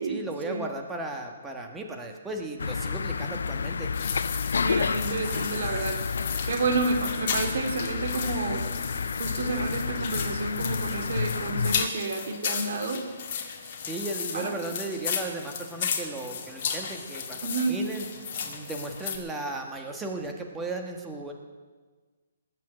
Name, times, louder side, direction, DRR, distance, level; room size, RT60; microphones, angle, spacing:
voice 1, 0.1-3.9 13.8-18.0 18.4-21.3, right 2 dB, 10° right, 2 dB, 1.4 m, -35 dB
sound 1, 2.6-11.9, left 5 dB, 85° left, 0.4 m, -30 dB
sound 2, 3.9-19.2, left 6 dB, 40° left, 1.9 m, -35 dB
voice 2, 4.6-8.7 9.2-13.0 14.3-14.6 17.4-17.8, right 3 dB, 60° right, 5 dB, 2.4 m, -30 dB
19.5 x 7.5 x 7.4 m, 1.4 s
hypercardioid pair, 160°, 0 cm